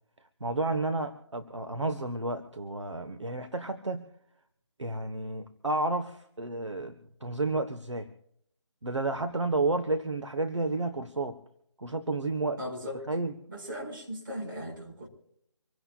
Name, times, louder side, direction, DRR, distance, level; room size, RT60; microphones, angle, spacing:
voice 1, 0.4-4.1 4.8-8.1 8.8-11.4 11.8-12.6 13.1-13.3, right 2 dB, 80° right, 8 dB, 1.4 m, -31 dB
voice 2, 12.6-13.0 13.5-15.1, equal, 45° right, 1 dB, 6.0 m, -38 dB
26.0 x 17.0 x 2.5 m, 0.71 s
figure-of-eight pair, 155°, 15 cm